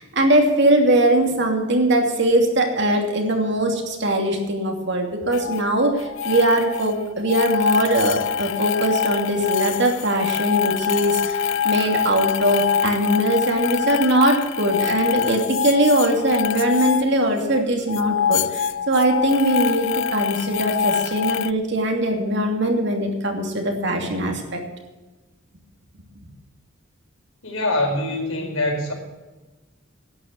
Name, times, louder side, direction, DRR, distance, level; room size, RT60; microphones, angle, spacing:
voice 1, 0.0-24.6, right 1 dB, 55° right, 2 dB, 2.8 m, -21 dB
sound 1, 5.3-5.6 6.0-6.9 7.3-17.6 17.9-21.5, left 8 dB, 60° left, 0.3 m, -25 dB
voice 2, 27.4-28.9, left 2 dB, 80° left, 1 dB, 4.6 m, -24 dB
11.5 x 10.5 x 8.3 m, 1.2 s
head